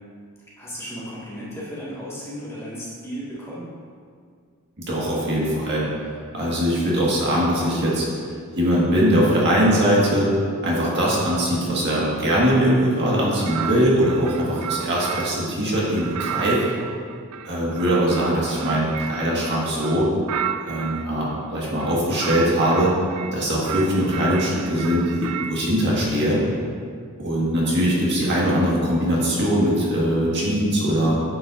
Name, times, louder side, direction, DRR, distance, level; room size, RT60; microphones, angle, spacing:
voice 1, 0.6-3.6, equal, 10° left, -9 dB, 1.8 m, -34 dB
voice 2, 4.8-5.8 6.3-8.1 8.6-10.3 10.6-16.6 17.4-20.1 20.6-22.9 23.3-26.4 27.2-31.1, equal, 50° right, -6 dB, 1.8 m, -21 dB
sound 1, 13.4-15.5 16.0-21.1 21.7-23.3 23.6-25.6, right 9 dB, 85° right, 0.4 m, -32 dB
8.9 x 7.3 x 2.6 m, 2.1 s
head